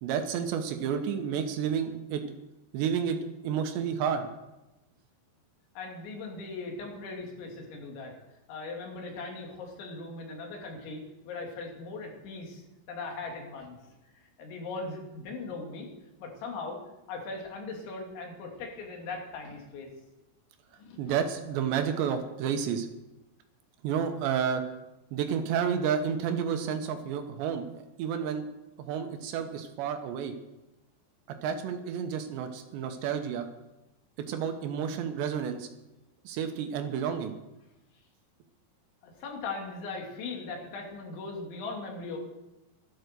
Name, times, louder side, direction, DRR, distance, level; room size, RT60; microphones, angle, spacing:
voice 1, 0.0-2.2 2.7-3.2 3.4-4.3 21.0-22.9 23.8-24.6 25.1-27.6 28.0-28.5 28.8-30.3 31.4-33.5 34.3-35.7 36.3-37.3, right 7 dB, 80° right, 6 dB, 3.2 m, -30 dB
voice 2, 5.8-8.1 8.5-13.8 14.1-15.9 16.2-16.8 17.1-19.9 20.8-21.1 39.0-42.2, left 3 dB, 90° left, 1 dB, 5.0 m, -39 dB
12.5 x 12.0 x 6.8 m, 0.99 s
omnidirectional pair, 5.1 m